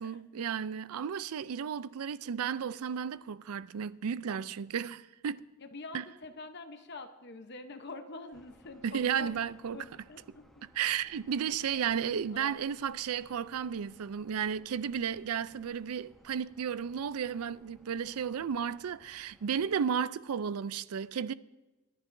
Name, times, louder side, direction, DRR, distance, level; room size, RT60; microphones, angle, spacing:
voice 1, 0.0-5.5 5.9-6.1 8.8-9.8 10.7-21.3, right 7 dB, 85° right, 0.4 m, -33 dB
voice 2, 5.6-9.3 9.7-10.6 11.5-11.8 12.3-12.5, left 3 dB, 50° left, 0.9 m, -46 dB
sound 1, 8.3-19.8, equal, ahead, 0.8 m, -62 dB
28.0 x 11.0 x 2.6 m
head